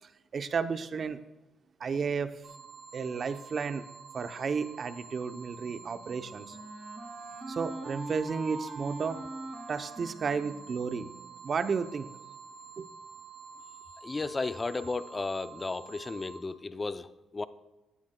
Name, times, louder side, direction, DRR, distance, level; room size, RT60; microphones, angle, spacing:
voice 1, 0.0-1.2 1.8-2.4 2.9-3.9 4.1-6.6 7.5-9.2 9.7-11.1 11.4-12.1 12.8-12.9, right 5 dB, 45° right, 11 dB, 0.6 m, -33 dB
sound 1, 2.4-16.4, right 5 dB, 65° right, 1.1 m, -49 dB
Wind instrument woodwind instrument, 5.6-11.4, right 2 dB, 25° right, 2.7 m, -42 dB
voice 2, 14.0-17.4, left 3 dB, 25° left, 13 dB, 0.5 m, -34 dB
15.5 x 9.7 x 2.2 m, 1.1 s
cardioid pair, 90°, 0 cm